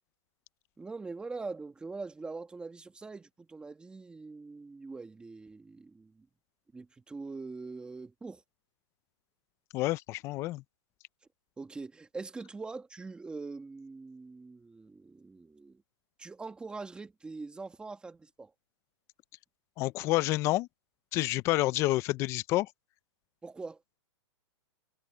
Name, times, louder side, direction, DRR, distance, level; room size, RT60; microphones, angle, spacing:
voice 1, 0.8-6.3 6.7-8.4 11.6-15.8 16.2-18.5 23.4-23.8, right 3 dB, 5° right, 1.9 m, -43 dB
voice 2, 9.7-10.6 19.8-20.7 21.1-22.7, left 18 dB, 20° left, 0.4 m, -28 dB
hypercardioid pair, 160°, 16 cm